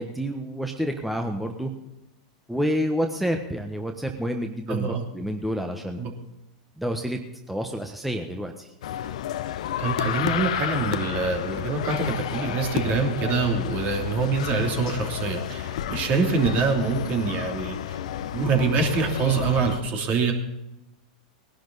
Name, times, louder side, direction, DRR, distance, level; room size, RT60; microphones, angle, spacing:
voice 1, 0.0-1.7 2.5-6.0 6.8-7.2 7.5-8.7, equal, ahead, 3 dB, 1.4 m, -28 dB
voice 2, 4.7-5.0 6.0-6.1 9.8-18.0 18.3-20.3, right 4 dB, 40° right, 3 dB, 3.1 m, -25 dB
sound 1, 8.8-19.8, left 11 dB, 70° left, 0.9 m, -31 dB
19.5 x 11.5 x 4.1 m, 0.92 s
hypercardioid pair, 100°, 4 cm